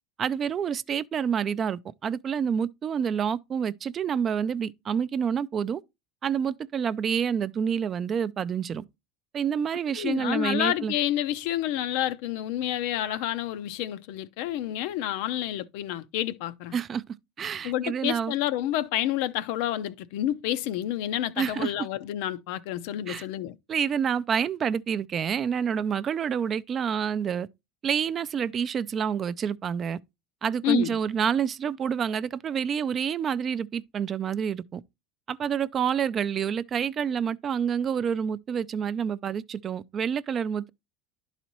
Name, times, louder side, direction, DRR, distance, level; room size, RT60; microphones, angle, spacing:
voice 1, 0.2-5.8 6.2-8.8 9.3-10.9 16.7-17.0 17.4-18.3 21.4-21.7 23.1-23.3 23.7-27.5 27.8-30.0 30.4-34.8 35.3-40.7, right 7 dB, 35° right, 0.4 m, -28 dB
voice 2, 10.0-16.8 17.6-23.5 30.6-31.0, left 12 dB, 70° left, 0.5 m, -29 dB
11.0 x 4.0 x 3.0 m
supercardioid pair, 125°, 0 cm